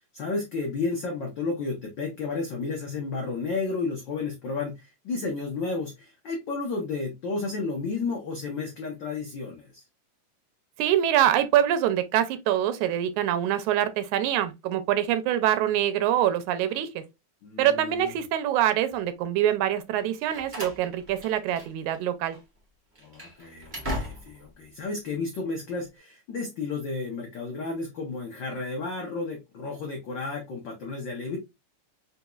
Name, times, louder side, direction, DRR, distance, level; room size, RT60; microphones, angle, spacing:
voice 1, 0.1-9.8 17.4-18.1 23.0-31.4, left 3 dB, 80° left, 1.0 m, -32 dB
voice 2, 10.8-17.0 17.6-22.4, right 11 dB, 90° right, 2.0 m, -25 dB
Slam, 19.9-22.0 22.2-22.4 22.9-24.5, equal, 45° right, 0.6 m, -37 dB
4.1 x 4.0 x 2.2 m
omnidirectional pair, 3.3 m